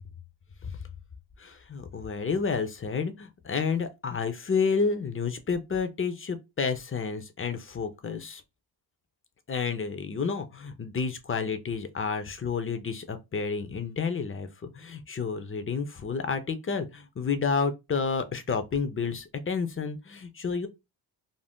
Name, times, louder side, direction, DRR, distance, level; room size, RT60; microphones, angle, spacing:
voice 1, 1.4-8.4 9.5-20.7, left 5 dB, 30° left, 0.6 m, -30 dB
2.6 x 2.0 x 3.5 m
cardioid pair, 65°, 46 cm